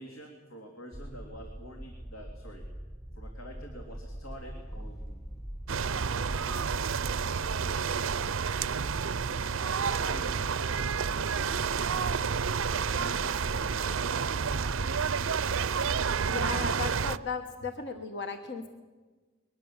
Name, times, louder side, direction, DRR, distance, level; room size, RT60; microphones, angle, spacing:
voice 1, 0.0-2.6 3.1-5.3 5.7-8.4 8.8-10.7 11.1-15.0, equal, 85° left, 2 dB, 3.1 m, -48 dB
sound 1, 0.9-16.3, equal, ahead, 0.6 m, -43 dB
sound 2, 3.9-16.0, equal, 15° left, 1.8 m, -50 dB
sound 3, 5.7-17.2, right 6 dB, 70° right, 0.6 m, -30 dB
voice 2, 16.2-18.7, left 4 dB, 55° left, 6 dB, 1.4 m, -36 dB
22.5 x 20.0 x 7.4 m, 1.3 s
head